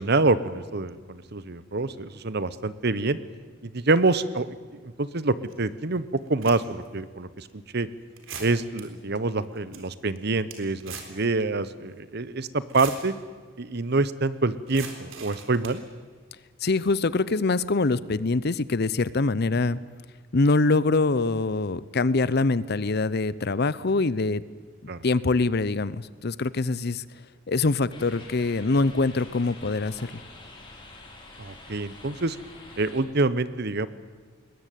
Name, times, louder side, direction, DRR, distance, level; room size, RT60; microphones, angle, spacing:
voice 1, 0.0-3.2 3.6-6.0 6.3-7.9 8.4-13.1 13.6-15.8 24.9-25.0 31.4-32.4 32.8-33.9, right 3 dB, 55° right, 15 dB, 1.0 m, -26 dB
sound 1, 5.5-5.6 6.2-6.9 7.4-7.5 8.2-8.8 9.3-9.4 9.6-9.8 10.2-11.2 11.5-11.6 12.5-13.1 14.7-15.8, right 6 dB, 75° right, 3.8 m, -40 dB
voice 2, 16.6-19.8 20.3-24.4 25.0-27.0 27.5-30.2, left 3 dB, 50° left, 18 dB, 0.7 m, -24 dB
sound 2, 27.9-33.0, left 2 dB, 25° left, 4.6 m, -46 dB
21.0 x 20.0 x 9.3 m, 1.5 s
head